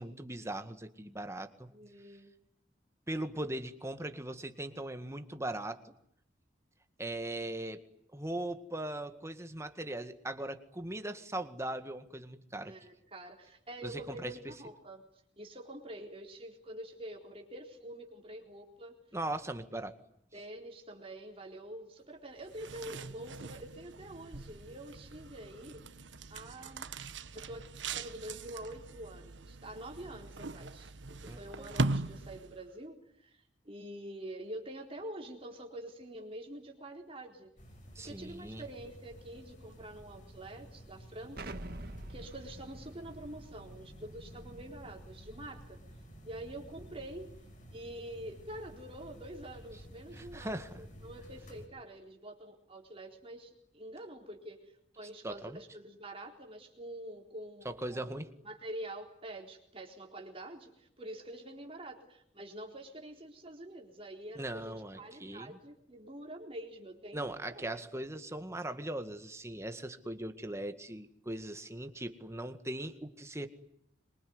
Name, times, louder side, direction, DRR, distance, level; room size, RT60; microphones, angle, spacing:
voice 1, 0.0-1.7 3.1-5.8 7.0-7.9 8.1-12.7 13.8-14.5 19.1-20.0 31.3-31.8 38.0-38.6 50.1-50.8 55.2-55.6 57.7-58.3 64.4-65.6 67.1-73.5, right 1 dB, 15° right, 8 dB, 1.9 m, -39 dB
voice 2, 1.7-2.3 12.5-15.0 15.4-19.0 20.3-25.8 26.3-26.9 27.3-30.9 31.2-37.5 38.0-41.7 42.0-45.8 46.2-47.3 47.7-58.1 58.4-67.7, right 1 dB, 30° right, 1 dB, 4.0 m, -46 dB
sound 1, 22.4-32.7, right 3 dB, 85° right, 1.3 m, -40 dB
sound 2, 37.6-51.7, equal, 45° left, 5.8 m, -52 dB
Explosion, 41.4-46.1, right 1 dB, 55° right, 1.7 m, -48 dB
26.0 x 23.5 x 9.6 m, 0.73 s
head